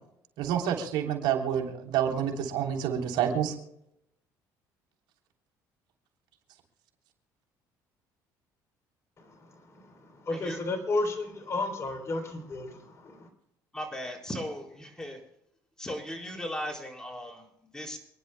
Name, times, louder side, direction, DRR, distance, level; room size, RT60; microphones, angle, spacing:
voice 1, 0.4-3.5, right 9 dB, 80° right, 1 dB, 3.4 m, -28 dB
voice 2, 9.2-13.3, left 2 dB, 35° left, 4 dB, 3.5 m, -33 dB
voice 3, 10.3-10.6 13.7-15.2 15.8-18.0, equal, 10° left, 0 dB, 4.2 m, -37 dB
28.5 x 11.0 x 2.2 m, 0.77 s
cardioid pair, 100°, 8 cm